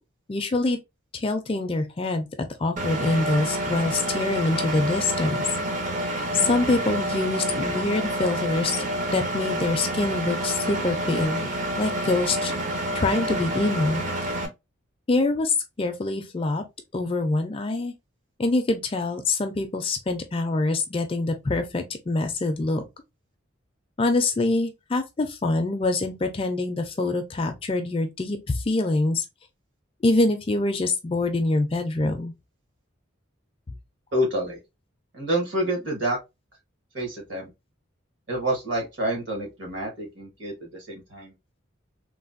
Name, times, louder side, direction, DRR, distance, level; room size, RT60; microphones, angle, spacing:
voice 1, 0.3-0.8 1.1-2.3 2.6-5.5 6.0-8.8 9.1-11.5 11.8-12.5 12.9-14.0 15.1-16.6 16.9-17.9 18.4-22.8 24.0-29.2 30.0-32.3, left 2 dB, 25° left, 0.3 m, -25 dB
Engine, 2.8-14.5, right 1 dB, 35° right, 0.5 m, -28 dB
voice 2, 34.1-34.6 35.1-36.2 36.9-37.5 38.3-41.3, right 1 dB, 65° right, 1.4 m, -28 dB
3.2 x 2.1 x 2.4 m
head